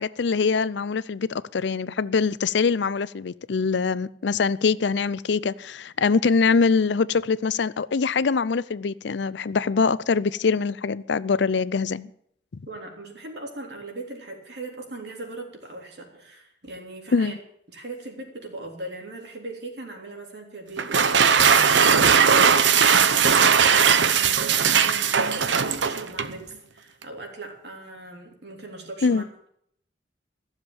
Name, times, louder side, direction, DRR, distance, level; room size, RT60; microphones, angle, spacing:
voice 1, 0.0-12.1 17.1-17.4 29.0-29.2, left 5 dB, 70° left, 0.5 m, -23 dB
voice 2, 12.7-17.3 17.7-23.0 23.6-29.5, right 2 dB, 65° right, 3.4 m, -39 dB
sound 1, 20.8-26.4, right 6 dB, 80° right, 0.9 m, -18 dB
15.5 x 7.4 x 8.9 m
head